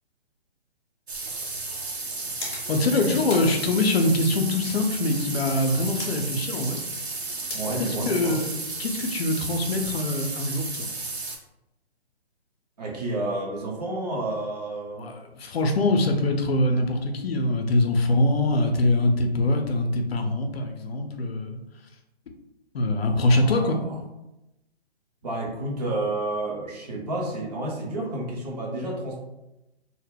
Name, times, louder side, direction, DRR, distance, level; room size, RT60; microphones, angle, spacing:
sound 1, 1.1-11.4, right 3 dB, 75° right, 0.7 m, -33 dB
sound 2, 1.6-8.9, left 2 dB, 25° left, 0.6 m, -44 dB
voice 1, 2.7-6.8 7.8-10.9 15.0-21.6 22.7-23.8, left 2 dB, 65° left, 4 dB, 0.5 m, -24 dB
voice 2, 7.5-8.4 12.8-15.1 23.0-24.0 25.2-29.2, right 2 dB, 40° right, -1 dB, 0.6 m, -30 dB
2.1 x 2.0 x 3.4 m, 0.93 s
figure-of-eight pair, 135°, 32 cm